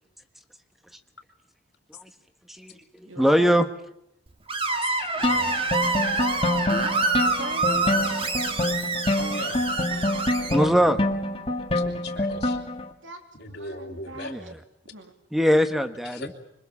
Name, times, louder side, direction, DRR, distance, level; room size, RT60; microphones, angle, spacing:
voice 1, 2.5-3.7 10.5-11.0 14.1-14.6 15.3-16.3, equal, ahead, 8 dB, 1.4 m, -22 dB
voice 2, 3.1-3.5 5.9-6.3 7.2-8.2 9.8-10.0 13.0-14.5 14.9-15.1, right 2 dB, 80° right, 5 dB, 2.9 m, -41 dB
Screech, 4.5-10.6, right 3 dB, 30° right, 1.8 m, -26 dB
voice 3, 4.8-5.6 9.1-9.6 10.5-10.7 11.7-12.6 13.4-14.3 16.1-16.3, left 2 dB, 55° left, 0 dB, 3.0 m, -38 dB
sound 1, 5.2-12.9, left 1 dB, 30° left, 1.9 m, -27 dB
26.0 x 23.5 x 7.3 m, 0.80 s
head